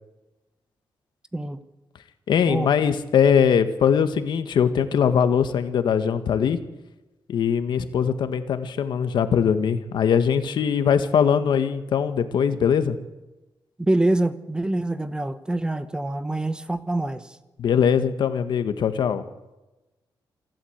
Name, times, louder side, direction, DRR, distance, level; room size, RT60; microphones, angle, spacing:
voice 1, 2.3-6.6 7.3-13.0 17.6-19.2, left 7 dB, 65° left, 1.6 m, -21 dB
voice 2, 13.8-17.4, right 2 dB, 10° right, 1.0 m, -25 dB
27.5 x 12.0 x 8.0 m
wide cardioid pair, 165°, 8 cm